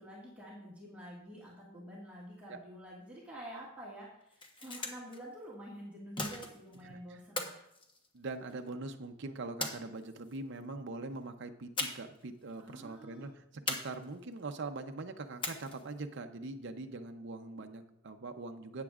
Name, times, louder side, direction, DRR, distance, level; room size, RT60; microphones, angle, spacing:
voice 1, 0.0-7.6 12.6-13.3, equal, 5° right, -7 dB, 1.8 m, -48 dB
sound 1, 4.2-5.2 6.2-6.8 7.4-8.6 9.6-10.4 11.8-12.2 12.5-12.6 13.7-14.4 15.4-16.0, left 2 dB, 25° left, 1.0 m, -39 dB
voice 2, 6.8-7.2 8.1-18.8, right 3 dB, 60° right, 5 dB, 0.6 m, -42 dB
13.0 x 8.9 x 2.4 m, 0.79 s
head